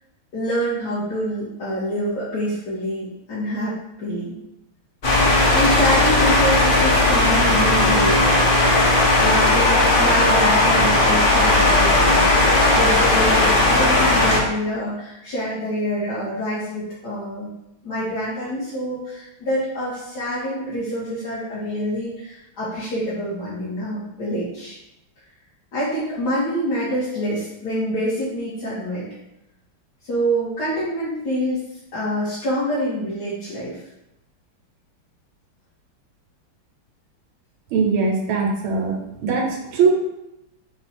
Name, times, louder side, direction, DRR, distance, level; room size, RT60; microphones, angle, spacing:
voice 1, 0.3-4.3 5.3-17.5 17.8-24.8 25.7-29.0 30.0-31.6 31.9-33.8, equal, 55° left, -11 dB, 1.6 m, -26 dB
sound 1, 5.0-14.4, left 2 dB, 75° left, 0.4 m, -16 dB
voice 2, 37.7-38.9 39.2-39.9, right 5 dB, 80° right, 1 dB, 1.5 m, -20 dB
4.3 x 2.4 x 4.1 m, 0.87 s
omnidirectional pair, 2.3 m